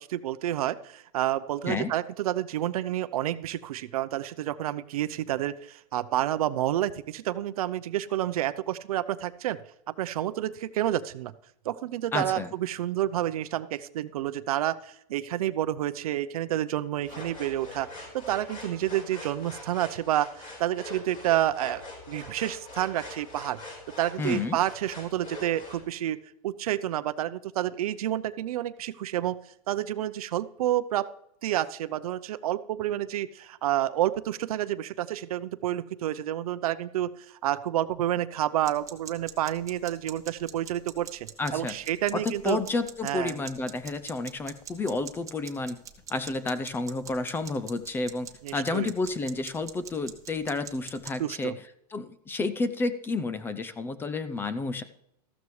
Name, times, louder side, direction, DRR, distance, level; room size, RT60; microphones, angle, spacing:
voice 1, 0.0-9.6 10.0-11.3 11.6-21.8 22.1-23.6 24.0-26.2 26.4-29.4 29.7-31.1 31.4-42.6 43.0-43.4 48.4-48.9 51.2-51.6, right 13 dB, 70° right, 14 dB, 0.7 m, -29 dB
voice 2, 12.1-12.5 24.2-24.6 41.4-41.8 42.1-45.8 46.1-51.5 51.9-54.8, left 3 dB, 10° left, 13 dB, 0.5 m, -30 dB
sound 1, 17.0-25.8, left 2 dB, 25° left, 4.9 m, -43 dB
sound 2, 38.6-51.1, right 8 dB, 15° right, 1.1 m, -44 dB
14.0 x 12.5 x 3.2 m, 0.76 s
hypercardioid pair, 145°, 20 cm